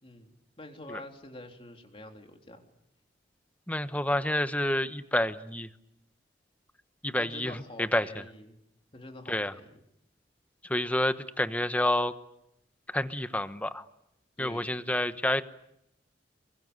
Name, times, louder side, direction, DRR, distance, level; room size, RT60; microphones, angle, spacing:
voice 1, 0.0-2.6 7.2-8.6 8.9-9.8 14.4-14.7, left 1 dB, 30° left, 4 dB, 3.6 m, -46 dB
voice 2, 3.7-5.7 7.0-7.5 7.9-8.1 9.3-9.5 10.6-12.1 12.9-13.8 14.4-15.4, left 1 dB, 10° left, 11 dB, 1.1 m, -28 dB
27.5 x 24.0 x 8.2 m, 0.78 s
head